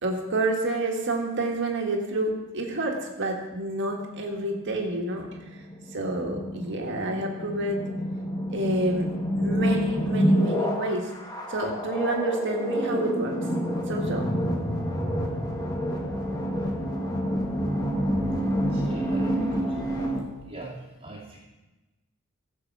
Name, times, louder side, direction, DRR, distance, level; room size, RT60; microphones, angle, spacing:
voice 1, 0.0-5.3 5.9-7.8 8.5-9.1 9.4-11.1 11.5-13.4 13.9-14.3, right 2 dB, 55° right, 1 dB, 1.8 m, -28 dB
sound 1, 3.8-20.2, equal, 20° left, 1.7 m, -28 dB
voice 2, 18.6-19.7 20.5-20.7 21.0-21.4, right 2 dB, 25° right, -3 dB, 2.2 m, -40 dB
15.5 x 7.1 x 4.8 m, 1.1 s
head